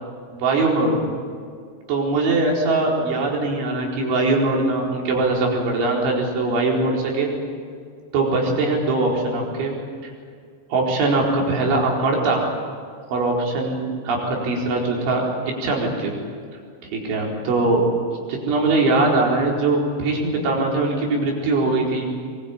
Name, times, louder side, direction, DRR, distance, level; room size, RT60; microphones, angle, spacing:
voice 1, 0.3-1.1 1.9-7.3 8.1-9.7 10.7-12.4 13.1-16.1 16.9-17.8 18.5-22.0, right 2 dB, 85° right, -2 dB, 6.9 m, -21 dB
24.0 x 22.5 x 8.8 m, 2.1 s
omnidirectional pair, 5.2 m